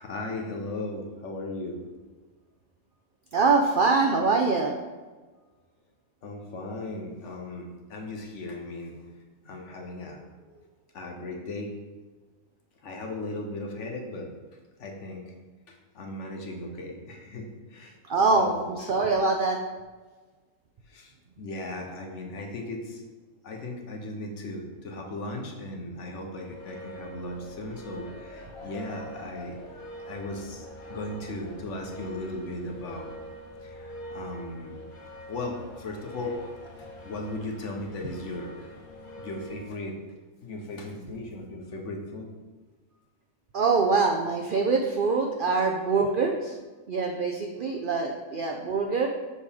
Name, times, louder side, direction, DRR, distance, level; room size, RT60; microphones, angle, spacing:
voice 1, 0.0-1.8 6.2-8.9 9.4-10.2 10.9-11.7 12.8-14.3 14.8-15.3 15.7-17.9 18.3-18.8 20.9-21.1 21.4-23.0 23.4-29.6 30.1-33.1 33.6-34.7 35.3-36.4 37.0-38.5 39.2-40.0 40.4-42.3 48.3-48.4, left 2 dB, 60° left, 2 dB, 1.1 m, -37 dB
voice 2, 3.3-4.7 18.1-18.5 18.8-19.6 43.5-46.5 46.9-49.1, right 4 dB, 85° right, 2 dB, 0.4 m, -24 dB
sound 1, 26.4-39.7, equal, 80° left, 1.7 m, -44 dB
6.5 x 5.0 x 3.4 m, 1.3 s
omnidirectional pair, 1.5 m